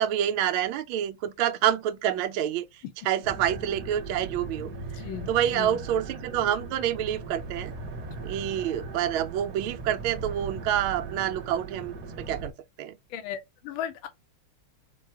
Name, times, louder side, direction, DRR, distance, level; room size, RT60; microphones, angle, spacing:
voice 1, 0.0-2.7 3.0-4.7 5.3-7.7 8.2-12.5 12.8-13.0, right 10 dB, 80° right, 1.4 m, -27 dB
sound 1, 3.2-12.5, right 4 dB, 55° right, 1.4 m, -39 dB
voice 2, 4.9-5.8 13.1-14.1, left 10 dB, 80° left, 1.4 m, -36 dB
4.5 x 2.3 x 4.6 m
omnidirectional pair, 2.3 m